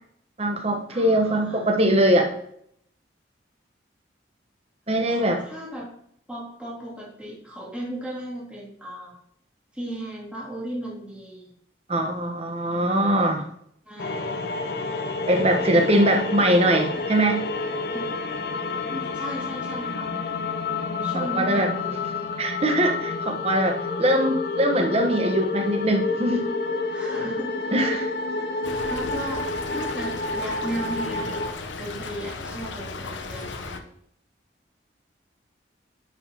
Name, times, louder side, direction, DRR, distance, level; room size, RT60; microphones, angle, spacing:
voice 1, 0.4-2.3 4.9-5.4 11.9-13.5 15.3-17.5 21.1-21.7 22.4-26.5 27.7-28.1, right 1 dB, 35° right, 3 dB, 1.0 m, -22 dB
voice 2, 0.9-1.7 5.1-5.8 6.3-9.2 9.7-11.5 13.9-14.5 15.5-16.1 17.9-18.1 18.9-20.2 20.6-22.0 26.9-27.5 27.8-28.1 28.9-29.5 29.7-31.4 31.8-33.8, right 1 dB, 5° right, -6 dB, 2.0 m, -36 dB
sound 1, 14.0-31.5, left 3 dB, 55° left, 0.5 m, -29 dB
Stream / Trickle dribble, 28.6-33.8, left 3 dB, 80° left, 0.8 m, -36 dB
10.5 x 4.8 x 2.9 m, 0.69 s
head